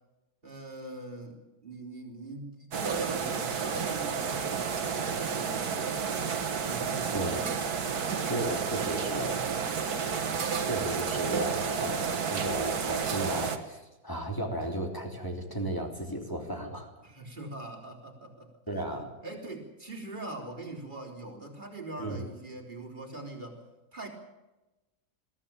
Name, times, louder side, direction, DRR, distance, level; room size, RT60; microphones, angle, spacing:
voice 1, 0.4-6.1 6.6-8.2 17.0-18.5 19.2-23.6 23.9-24.1, right 2 dB, 30° right, 0 dB, 4.2 m, -42 dB
sound 1, 2.7-13.6, right 6 dB, 75° right, 2.0 m, -31 dB
voice 2, 8.3-9.4 10.6-16.9 18.7-19.1 22.0-22.3, right 1 dB, 15° left, 1 dB, 3.2 m, -34 dB
22.0 x 15.5 x 8.9 m, 1.0 s
omnidirectional pair, 1.7 m